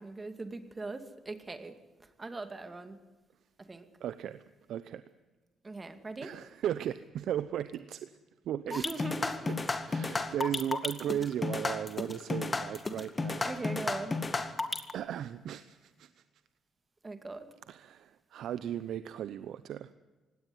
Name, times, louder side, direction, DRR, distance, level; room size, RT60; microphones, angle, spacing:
voice 1, 0.0-1.8 2.2-3.0 3.6-3.9 5.6-6.3 8.7-9.5 13.4-14.2 17.0-17.5, right 3 dB, 25° right, 9 dB, 2.4 m, -40 dB
voice 2, 4.0-4.4 4.7-5.0 6.2-8.2 8.5-8.9 9.5-9.6 9.9-13.4 14.3-14.4 14.9-16.2 17.7-19.9, right 10 dB, 75° right, 14 dB, 0.7 m, -36 dB
sound 1, 8.7-14.9, left 3 dB, 25° left, 1.9 m, -32 dB
19.0 x 17.0 x 9.7 m, 1.2 s
cardioid pair, 90°, 0 cm